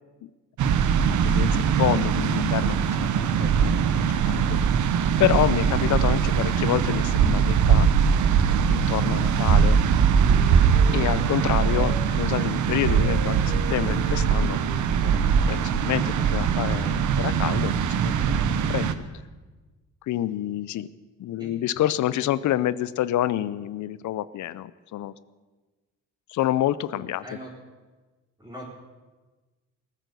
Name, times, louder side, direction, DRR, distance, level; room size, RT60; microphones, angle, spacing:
sound 1, 0.6-18.9, right 7 dB, 75° right, 1.0 m, -21 dB
voice 1, 1.0-3.1 3.4-3.8 4.1-4.6 5.2-7.9 8.7-9.8 10.9-14.6 15.0-15.2 15.5-19.0 20.0-20.9 21.2-25.1 26.3-27.2, left 13 dB, 70° left, 17 dB, 0.6 m, -28 dB
Wind instrument woodwind instrument, 9.1-12.2 12.6-16.1, right 4 dB, 40° right, 3.0 m, -41 dB
voice 2, 27.0-27.5 28.4-28.7, equal, 10° right, -7 dB, 4.4 m, -41 dB
19.5 x 9.2 x 6.8 m, 1.3 s
cardioid pair, 90°, 30 cm